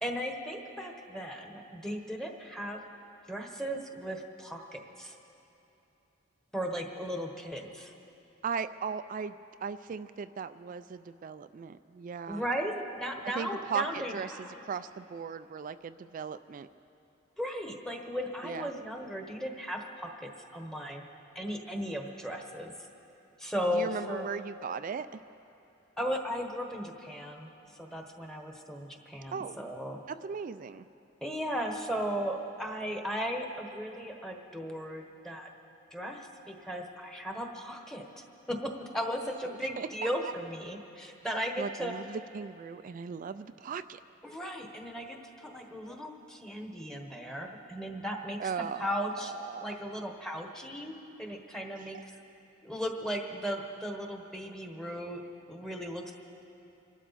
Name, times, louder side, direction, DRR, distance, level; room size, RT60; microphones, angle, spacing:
voice 1, 0.0-2.8 3.3-5.2 6.5-7.9 12.3-14.5 17.4-21.0 21.3-22.7 23.4-24.3 26.0-30.0 31.2-35.5 35.9-41.9 44.2-48.5 48.8-49.3 49.6-52.1 52.6-55.2 55.5-56.1, equal, 5° left, 2 dB, 1.2 m, -36 dB
voice 2, 8.4-9.3 9.6-12.4 13.4-14.3 14.6-16.7 18.4-18.7 23.7-25.1 29.3-29.6 30.1-30.8 39.5-39.9 41.6-44.0 48.4-48.9 49.2-49.7, right 6 dB, 40° right, 12 dB, 0.3 m, -37 dB
26.5 x 12.0 x 4.1 m, 2.9 s
head